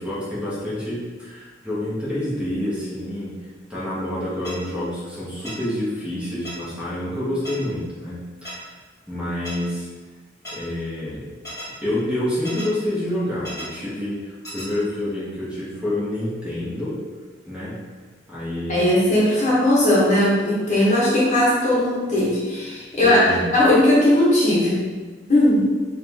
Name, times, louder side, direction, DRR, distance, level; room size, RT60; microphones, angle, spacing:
voice 1, 0.0-3.4 3.7-8.7 9.1-9.9 10.5-11.2 11.8-16.9 17.5-17.8 18.3-19.0 23.0-23.4, left 1 dB, 5° right, -10 dB, 1.1 m, -28 dB
sound 1, 4.4-4.5 5.4-5.5 6.4-6.5 7.4-7.5 8.4-8.5 9.4-9.5 10.4-10.5 11.4-11.6 12.4-12.7 13.4-13.6 14.4-14.7, equal, 15° left, 1.4 m, -34 dB
voice 2, 18.7-24.8 25.3-25.7, left 1 dB, 40° left, -7 dB, 1.2 m, -18 dB
3.3 x 3.3 x 3.4 m, 1.4 s
head